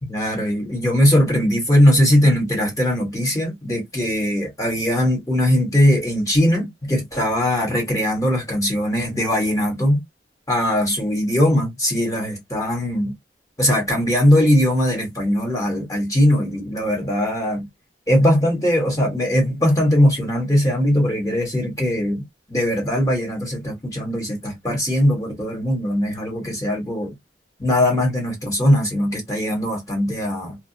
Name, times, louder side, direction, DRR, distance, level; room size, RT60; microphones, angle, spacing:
voice 1, 0.0-10.0 10.5-13.1 13.6-17.6 18.1-22.2 22.5-27.1 27.6-30.6, equal, 20° left, 1.2 m, -20 dB
2.4 x 2.2 x 2.8 m
head